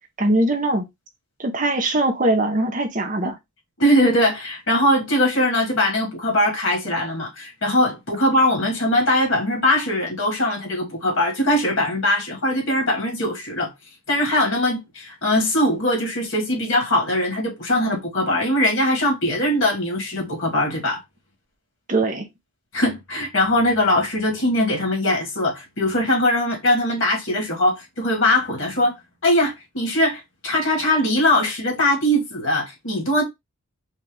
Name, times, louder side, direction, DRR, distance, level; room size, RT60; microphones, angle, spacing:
voice 1, 0.2-0.8 1.4-3.4 21.9-22.3, right 2 dB, 35° right, 0.7 m, -21 dB
voice 2, 3.8-13.7 14.1-21.0 22.7-29.0 29.2-33.2, left 1 dB, 65° left, 1.9 m, -21 dB
4.3 x 2.4 x 3.2 m
head